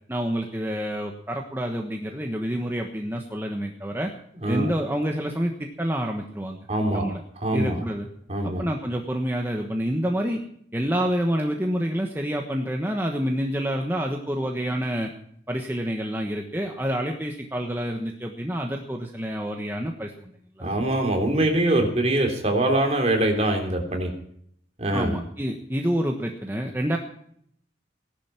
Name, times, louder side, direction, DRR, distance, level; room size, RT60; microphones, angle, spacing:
voice 1, 0.1-4.1 4.5-6.7 6.9-7.2 7.5-8.1 8.6-10.4 10.7-15.1 15.5-20.3 20.6-20.7 24.9-27.0, equal, 10° right, 2 dB, 1.2 m, -28 dB
voice 2, 6.7-7.0 7.4-7.8 8.3-8.7 20.6-24.1 24.8-25.1, right 1 dB, 35° right, 3 dB, 3.2 m, -23 dB
17.5 x 11.5 x 5.9 m, 0.67 s
head